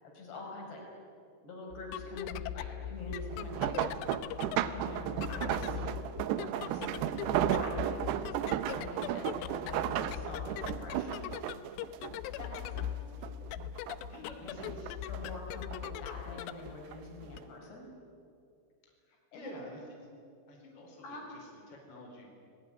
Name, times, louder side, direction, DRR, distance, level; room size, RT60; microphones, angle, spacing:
voice 1, 0.0-0.8 1.4-4.0 4.2-6.0 6.3-11.3 12.4-12.9 14.4-14.8 15.1-17.9 19.3-19.6 21.0-21.3, left 2 dB, 70° left, 0 dB, 7.4 m, -46 dB
sound 1, 1.7-17.4, left 10 dB, 90° left, 3.0 m, -41 dB
sound 2, 3.3-12.9 13.2-14.2 14.6-15.9 16.7-17.0 17.4-17.5, right 11 dB, 80° right, 3.0 m, -34 dB
voice 2, 14.1-14.9 19.0-20.0 20.5-22.3, left 1 dB, 25° left, 0 dB, 5.0 m, -50 dB
28.5 x 19.5 x 10.0 m, 2.5 s
omnidirectional pair, 4.9 m